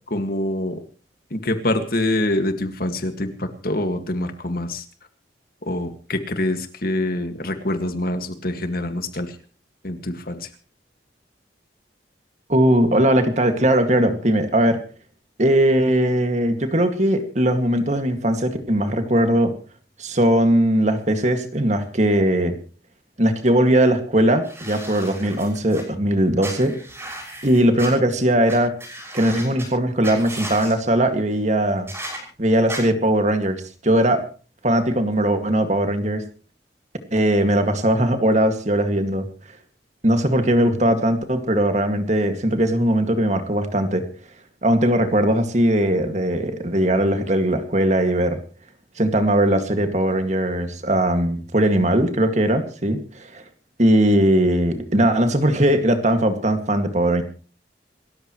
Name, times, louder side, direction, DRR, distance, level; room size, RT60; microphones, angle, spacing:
voice 1, 0.1-0.8 1.3-4.8 5.6-9.3 9.8-10.5, left 1 dB, 55° left, 8 dB, 2.0 m, -25 dB
voice 2, 12.5-14.8 15.4-19.5 20.0-22.5 23.2-26.8 27.4-28.7 29.1-31.9 32.4-34.3 34.6-36.2 37.1-39.3 40.0-44.1 44.6-48.4 49.0-53.4 53.8-57.2, right 1 dB, 40° right, 7 dB, 2.2 m, -19 dB
sound 1, 24.4-25.8 26.4-27.9 28.5-28.6 28.8-29.6 30.0-30.7 31.9-32.2 32.7-32.8, right 1 dB, 15° right, 6.2 m, -35 dB
28.0 x 14.0 x 3.2 m, 0.38 s
head